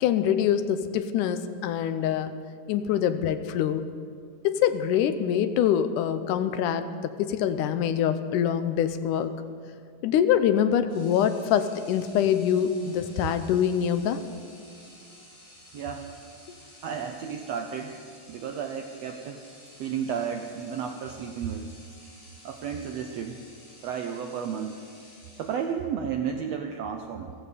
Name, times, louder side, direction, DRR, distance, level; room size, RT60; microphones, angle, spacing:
voice 1, 0.0-2.3 2.7-3.8 4.4-9.3 10.0-14.2, left 9 dB, 80° left, 10 dB, 2.1 m, -24 dB
sound 1, 10.9-25.9, left 1 dB, 25° left, 4.9 m, -52 dB
voice 2, 15.7-16.3 16.8-17.9 18.3-19.4 19.8-21.7 22.4-23.4 23.8-24.8 25.3-27.3, right 7 dB, 80° right, 4 dB, 1.5 m, -32 dB
15.0 x 15.0 x 5.1 m, 2.3 s
omnidirectional pair, 3.7 m